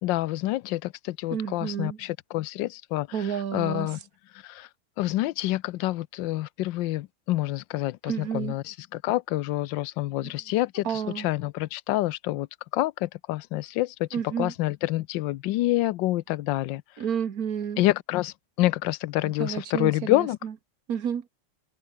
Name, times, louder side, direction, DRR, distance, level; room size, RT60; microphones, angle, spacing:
voice 1, 0.0-4.0 4.4-4.7 5.0-12.5 12.7-16.8 17.8-20.4, left 16 dB, 80° left, 1.3 m, -27 dB
voice 2, 1.3-2.0 3.1-3.9 8.1-8.6 10.2-10.3 10.9-11.3 14.1-14.5 17.0-17.8 19.2-20.5 20.9-21.3, right 8 dB, 55° right, 1.8 m, -30 dB
open air
omnidirectional pair, 2.0 m